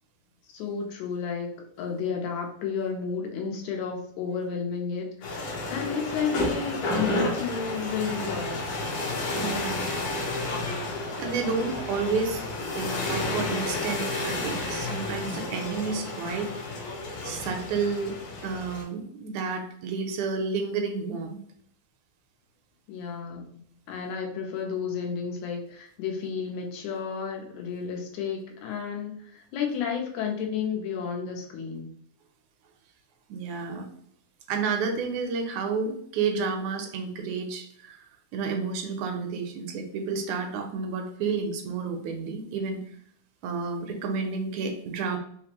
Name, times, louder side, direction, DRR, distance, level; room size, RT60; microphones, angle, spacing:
voice 1, 0.5-8.6 22.9-31.9, left 6 dB, 85° left, 1 dB, 2.1 m, -32 dB
sound 1, 5.2-18.8, left 2 dB, 70° left, 1.3 m, -31 dB
voice 2, 9.4-9.9 10.7-12.4 12.8-16.6 17.2-18.2 18.4-21.4 33.3-33.9 34.5-38.0 38.3-42.8 43.4-45.2, right 5 dB, 80° right, 5 dB, 2.0 m, -30 dB
5.0 x 2.0 x 2.9 m, 0.64 s
omnidirectional pair, 3.3 m